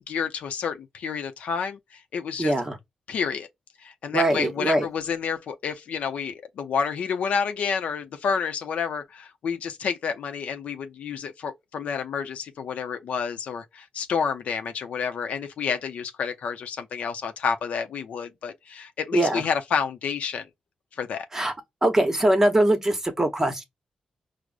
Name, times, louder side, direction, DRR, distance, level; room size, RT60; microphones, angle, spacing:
voice 1, 0.1-2.5 3.1-3.5 3.8-20.5 20.9-21.3, left 6 dB, 75° left, 0.6 m, -29 dB
voice 2, 2.4-2.8 4.1-4.8 19.1-19.4 21.3-21.5 21.8-23.6, right 1 dB, 20° right, 0.9 m, -22 dB
4.7 x 2.0 x 2.4 m
cardioid pair, 80°, 2 cm